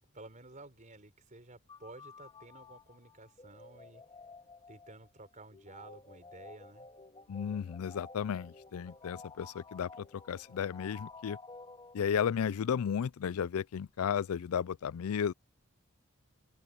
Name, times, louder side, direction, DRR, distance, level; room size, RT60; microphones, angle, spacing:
voice 1, 0.1-4.0 4.7-6.9, right 2 dB, 35° right, 4.8 m, -53 dB
sound 1, 1.7-12.4, left 3 dB, 25° left, 1.8 m, -53 dB
voice 2, 7.3-11.4 11.9-15.3, left 7 dB, 80° left, 0.4 m, -34 dB
open air
head